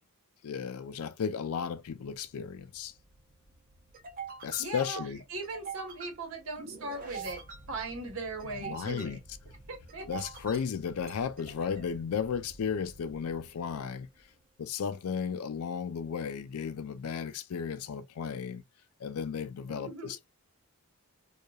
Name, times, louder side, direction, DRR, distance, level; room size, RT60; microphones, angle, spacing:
voice 1, 0.4-2.9 4.4-5.2 8.6-9.2 10.1-14.1 14.6-18.6 19.0-20.3, left 6 dB, 80° left, 0.4 m, -34 dB
sound 1, 1.9-14.4, right 5 dB, 40° right, 0.7 m, -47 dB
voice 2, 4.6-9.2 9.7-10.1 19.7-20.1, right 2 dB, 65° right, 1.0 m, -39 dB
2.9 x 2.3 x 2.2 m
head